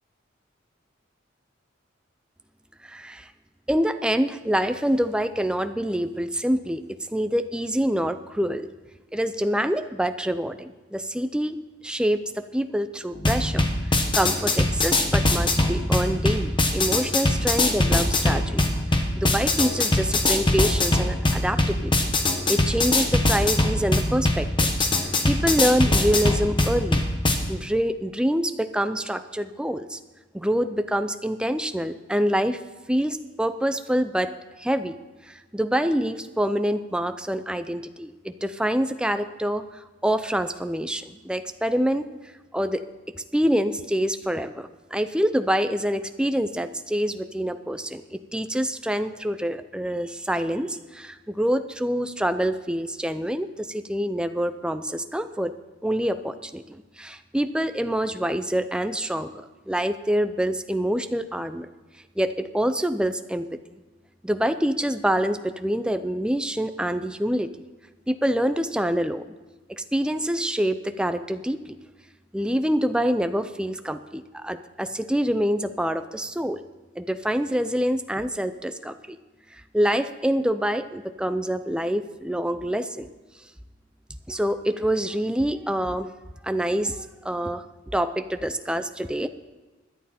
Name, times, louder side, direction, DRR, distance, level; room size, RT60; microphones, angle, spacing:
voice 1, 2.8-3.3 3.7-8.7 9.1-11.6 11.8-22.1 22.5-24.9 25.3-27.0 27.5-30.0 30.3-32.6 32.9-34.3 34.6-35.0 35.3-42.1 42.5-42.8 43.3-55.5 55.8-61.7 62.2-63.5 64.2-67.5 68.1-69.2 69.7-71.8 72.3-76.6 77.0-79.2 79.7-83.1 84.3-86.1 86.4-87.6 87.9-89.3, equal, 5° right, 9 dB, 0.5 m, -26 dB
sound 1, 13.2-27.3, left 2 dB, 25° left, 1.3 m, -22 dB
16.5 x 11.0 x 4.3 m, 1.2 s
head